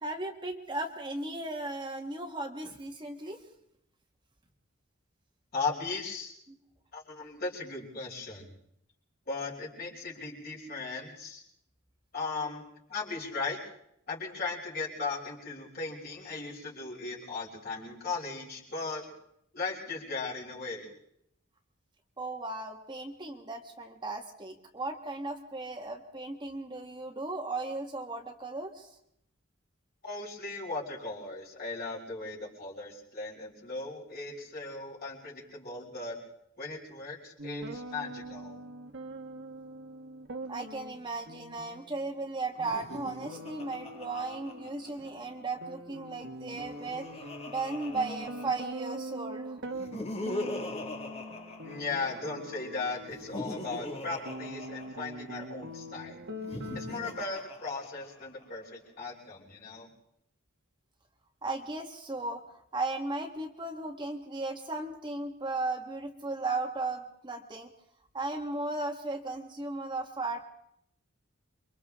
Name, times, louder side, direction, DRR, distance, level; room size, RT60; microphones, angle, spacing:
voice 1, 0.0-3.4 6.5-6.6 22.2-28.9 40.5-47.1 47.5-49.6 61.4-67.7 68.1-70.4, right 2 dB, 20° right, 2 dB, 1.6 m, -36 dB
voice 2, 5.5-6.3 6.9-8.5 9.3-11.4 12.1-13.6 14.1-19.1 19.5-20.9 30.0-36.2 36.6-38.6 51.6-56.2 56.7-59.9, left 3 dB, 45° left, -3 dB, 5.5 m, -37 dB
sound 1, 37.4-57.2, right 1 dB, 55° right, 1.7 m, -43 dB
Laughter, 42.6-45.3 46.4-49.0 49.7-52.4 53.0-55.4 56.3-58.4, left 1 dB, 30° left, 2.0 m, -42 dB
29.0 x 24.5 x 3.7 m, 0.73 s
head